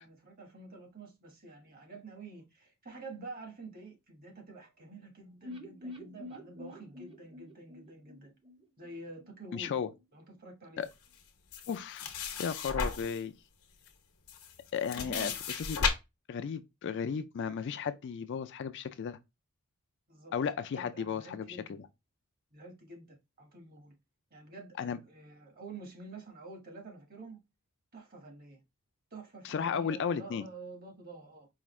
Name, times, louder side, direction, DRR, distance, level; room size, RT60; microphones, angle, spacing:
voice 1, 0.0-8.3 8.8-9.7 10.1-10.9 14.9-15.4 20.1-20.3 20.7-21.8 22.5-23.9 24.3-27.4 27.9-28.6 29.1-31.5, right 3 dB, 40° right, 1.2 m, -48 dB
sound 1, 5.4-9.3 9.6-9.7 10.0-10.1, left 1 dB, 25° right, 0.7 m, -47 dB
voice 2, 9.5-9.9 10.8-10.9 11.7-13.3 14.7-15.3 15.6-15.9 16.3-19.2 20.3-21.6 24.8-25.0 29.4-30.4, left 6 dB, 55° left, 0.3 m, -34 dB
sound 2, 11.5-13.2 13.9-14.0 14.3-15.9, left 5 dB, 80° left, 0.9 m, -34 dB
4.8 x 2.4 x 3.0 m
head